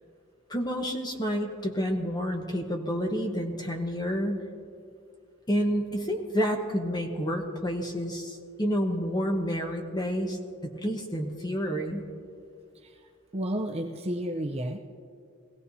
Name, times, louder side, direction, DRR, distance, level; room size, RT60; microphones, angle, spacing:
voice 1, 0.5-4.4 5.5-10.4 10.8-12.0, equal, 20° left, 2 dB, 1.1 m, -29 dB
voice 2, 13.3-14.8, right 1 dB, 30° right, 2 dB, 0.6 m, -31 dB
21.0 x 16.0 x 2.8 m, 2.4 s
head